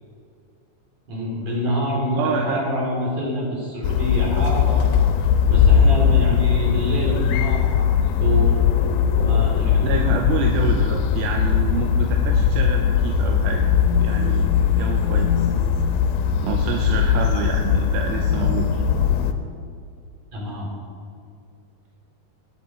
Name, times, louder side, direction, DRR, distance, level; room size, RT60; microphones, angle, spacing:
voice 1, 1.1-4.9 5.2-8.6 9.1-9.9 20.3-20.7, equal, 50° right, -3 dB, 4.5 m, -26 dB
voice 2, 2.1-2.6 9.8-13.6 14.0-15.5 16.4-18.8, right 6 dB, 80° right, 2 dB, 2.5 m, -27 dB
sound 1, 3.8-19.3, left 8 dB, 80° left, 2.5 m, -19 dB
19.0 x 8.7 x 4.4 m, 2.3 s
omnidirectional pair, 4.6 m